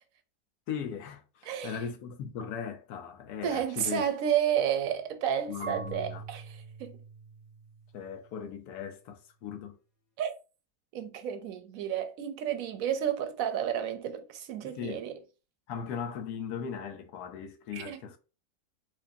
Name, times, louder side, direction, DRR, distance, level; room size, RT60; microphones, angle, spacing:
voice 1, 0.7-4.0 5.5-6.2 7.9-9.8 14.6-15.0 15.7-18.2, left 7 dB, 85° left, 1.2 m, -38 dB
voice 2, 1.5-1.8 3.4-7.0 10.2-10.3 10.9-15.2 17.7-18.0, right 9 dB, 70° right, 0.9 m, -31 dB
Marimba xylophone / Wood, 5.6-8.5, right 3 dB, 65° left, 1.5 m, -44 dB
4.7 x 2.5 x 2.6 m
omnidirectional pair, 1.6 m